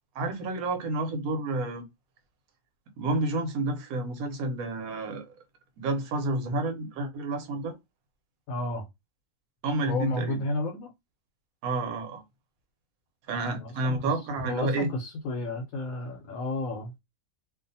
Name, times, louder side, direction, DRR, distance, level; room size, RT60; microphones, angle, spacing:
voice 1, 0.1-1.8 3.0-5.4 5.8-7.7 9.6-10.4 11.6-12.2 13.3-14.9, right 2 dB, 90° right, 1.2 m, -30 dB
voice 2, 8.5-8.8 9.8-10.9 13.5-14.1 14.4-16.9, left 2 dB, 80° left, 1.0 m, -32 dB
2.6 x 2.4 x 2.6 m
omnidirectional pair, 1.4 m